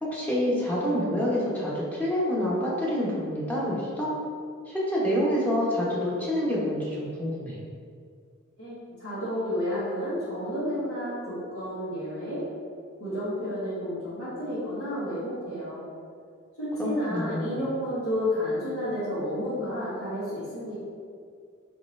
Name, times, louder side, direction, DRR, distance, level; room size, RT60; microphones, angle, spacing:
voice 1, 0.0-4.1 4.7-7.6 16.8-17.6, equal, 5° left, -7 dB, 0.8 m, -27 dB
voice 2, 8.6-12.4 13.0-15.8 16.6-20.8, left 1 dB, 85° left, -13 dB, 1.5 m, -31 dB
4.4 x 4.1 x 2.5 m, 2.2 s
head